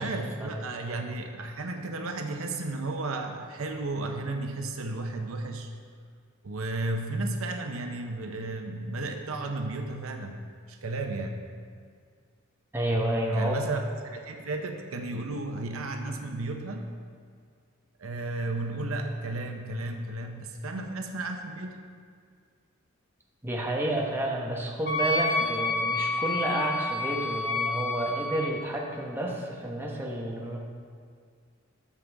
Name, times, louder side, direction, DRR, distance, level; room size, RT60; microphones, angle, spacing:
voice 1, 0.0-5.7 6.4-10.4 10.7-11.4 13.3-16.9 18.0-21.8, right 2 dB, 80° right, 4 dB, 0.8 m, -33 dB
voice 2, 12.7-13.6 23.4-30.6, right 1 dB, 10° right, -2 dB, 1.0 m, -30 dB
Wind instrument woodwind instrument, 24.8-28.5, left 2 dB, 45° left, 1.5 m, -29 dB
13.5 x 5.4 x 3.5 m, 2.1 s
head